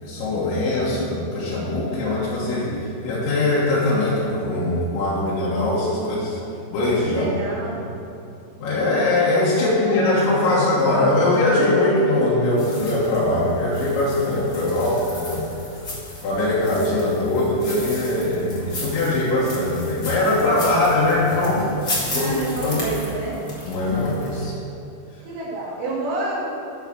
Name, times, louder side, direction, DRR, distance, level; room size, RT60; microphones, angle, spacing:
voice 1, 0.0-6.4 6.7-7.3 7.6-7.8 8.6-15.5 16.2-21.7 22.1-22.3 22.6-22.9 23.7-24.6, left 2 dB, 80° left, -7 dB, 3.8 m, -21 dB
voice 2, 7.1-7.8 9.6-10.0 22.1-23.4 25.2-26.5, right 2 dB, 85° right, -7 dB, 4.8 m, -29 dB
sound 1, 12.6-24.4, left 1 dB, 55° left, 0.9 m, -34 dB
12.5 x 4.9 x 6.1 m, 2.7 s
omnidirectional pair, 5.4 m